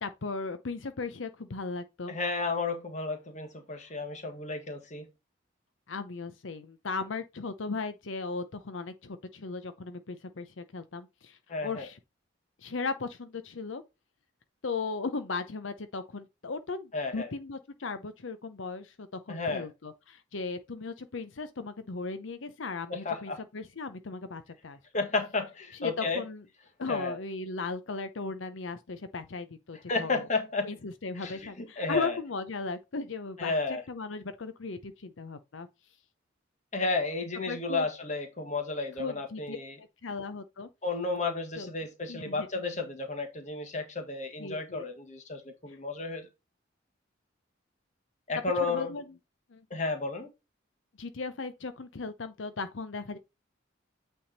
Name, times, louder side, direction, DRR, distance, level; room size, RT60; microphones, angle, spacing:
voice 1, 0.0-2.1 3.8-3.9 5.9-12.0 12.6-13.8 14.6-24.8 25.7-26.4 26.8-30.3 30.6-33.5 33.9-35.7 37.5-37.9 39.0-40.7 41.6-41.7 42.1-42.5 44.4-44.8 45.7-45.8 48.6-49.0 49.5-49.6 51.0-53.2, left 4 dB, 80° left, 0.7 m, -37 dB
voice 2, 2.1-5.1 11.5-11.9 16.9-17.3 19.3-19.7 22.9-23.4 24.9-26.2 26.9-27.2 29.9-30.7 31.2-32.2 33.4-33.8 36.7-39.7 40.8-46.3 48.3-48.9 49.7-50.3, left 3 dB, 35° left, 1.6 m, -32 dB
8.7 x 3.6 x 4.1 m
head